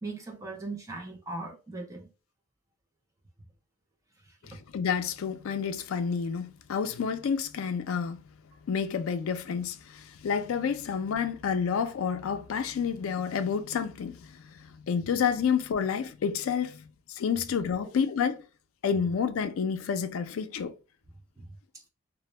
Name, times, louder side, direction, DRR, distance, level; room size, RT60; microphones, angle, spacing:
voice 1, 0.0-2.1 4.5-4.6 21.4-21.5, right 2 dB, 15° right, 0.4 m, -39 dB
voice 2, 4.7-8.2 8.7-14.2 14.9-16.8 17.1-18.4 18.8-20.7, left 6 dB, 75° left, 0.3 m, -29 dB
2.1 x 2.0 x 3.0 m
head